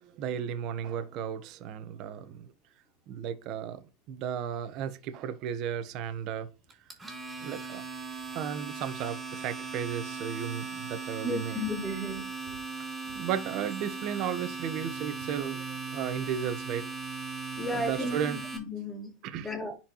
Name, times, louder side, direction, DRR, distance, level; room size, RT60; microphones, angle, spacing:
voice 1, 0.0-2.5 3.1-3.8 4.1-6.5 7.4-7.8 8.3-11.6 13.1-16.8 17.7-18.4 19.2-19.5, right 9 dB, 45° right, 1.1 m, -34 dB
Domestic sounds home sounds, 6.7-18.6, right 4 dB, 5° right, 3.4 m, -38 dB
voice 2, 11.2-12.3 17.6-19.1 19.4-19.7, left 1 dB, 10° left, 3.7 m, -34 dB
10.0 x 4.4 x 3.0 m
supercardioid pair, 145°, 0 cm